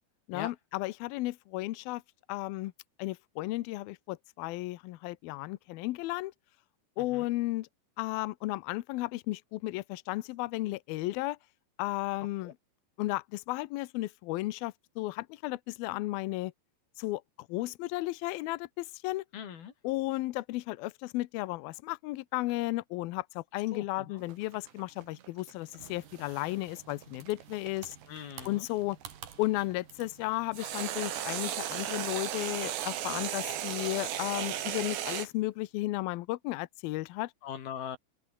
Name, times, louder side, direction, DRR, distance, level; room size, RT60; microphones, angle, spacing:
voice 1, 0.3-2.0 2.3-2.7 3.0-6.3 7.0-7.7 8.0-11.4 11.8-12.5 13.0-16.5 17.0-17.2 17.5-19.2 19.8-28.0 28.4-29.0 29.4-37.3, left 19 dB, 85° left, 2.2 m, -34 dB
voice 2, 7.0-7.3 12.4-12.5 19.3-19.7 23.7-24.2 28.1-28.7 37.4-38.0, left 8 dB, 60° left, 4.5 m, -41 dB
sound 1, 24.3-29.4 30.5-35.3, right 11 dB, 75° right, 4.3 m, -36 dB
sound 2, 25.8-34.9, right 8 dB, 55° right, 4.1 m, -53 dB
open air
omnidirectional pair, 5.1 m